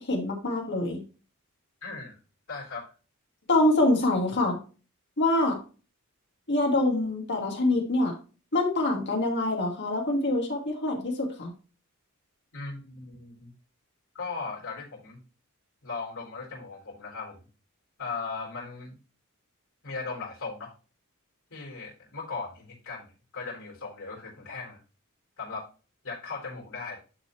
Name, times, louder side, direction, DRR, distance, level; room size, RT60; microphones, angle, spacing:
voice 1, 0.1-1.0 3.5-4.6 5.2-5.5 6.5-8.1 8.5-11.5, left 2 dB, 55° left, 0 dB, 2.3 m, -25 dB
voice 2, 1.8-2.2 2.5-2.9 12.5-13.5 14.1-15.2 15.8-17.5 18.0-19.0 19.8-20.7 21.5-24.8 25.4-25.7 26.0-27.0, left 4 dB, 75° left, -5 dB, 3.9 m, -38 dB
11.0 x 4.2 x 3.2 m, 0.35 s
head